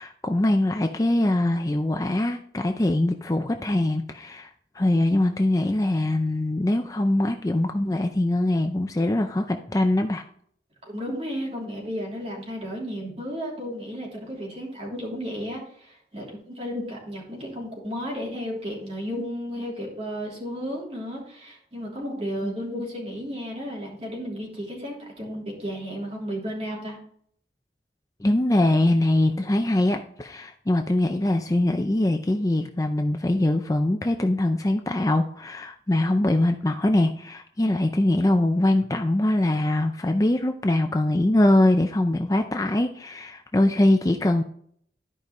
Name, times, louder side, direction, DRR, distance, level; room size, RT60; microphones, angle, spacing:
voice 1, 0.0-4.5 4.7-10.2 28.2-44.4, left 1 dB, 20° left, 5 dB, 0.4 m, -22 dB
voice 2, 10.8-27.0, equal, 35° right, -3 dB, 3.1 m, -33 dB
13.0 x 5.2 x 3.1 m, 0.64 s
head